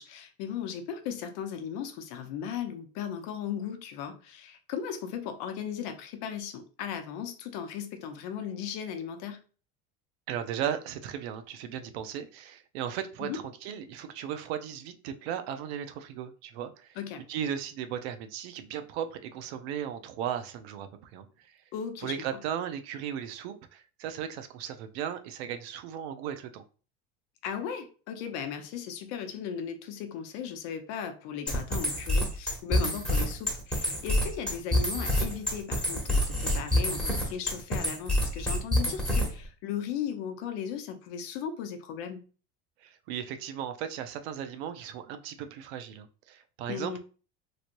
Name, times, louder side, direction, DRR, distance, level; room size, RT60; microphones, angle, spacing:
voice 1, 0.0-9.4 13.2-13.4 17.0-17.2 21.7-22.1 27.4-42.2 46.7-47.0, left 8 dB, 70° left, 0.7 m, -37 dB
voice 2, 10.3-17.0 17.3-21.5 22.0-26.6 42.8-47.0, right 9 dB, 85° right, 0.6 m, -36 dB
sound 1, 31.5-39.5, left 1 dB, 5° left, 1.0 m, -27 dB
3.1 x 2.9 x 2.6 m
supercardioid pair, 130°, 31 cm